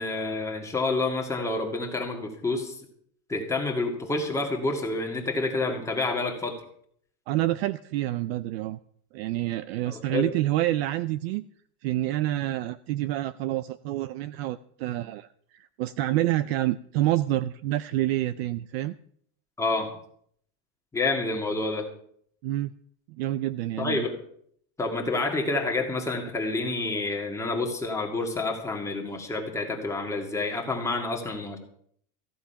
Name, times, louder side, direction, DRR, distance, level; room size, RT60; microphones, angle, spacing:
voice 1, 0.0-2.8 3.3-6.5 9.8-10.3 19.6-19.9 20.9-21.9 23.8-24.2 24.8-31.6, left 3 dB, 5° left, 1 dB, 2.1 m, -28 dB
voice 2, 7.3-8.8 9.1-11.4 11.8-18.9 22.4-22.7 23.1-24.0, right 15 dB, 45° right, 15 dB, 0.5 m, -28 dB
15.0 x 10.0 x 5.7 m, 0.63 s
supercardioid pair, 160°, 44 cm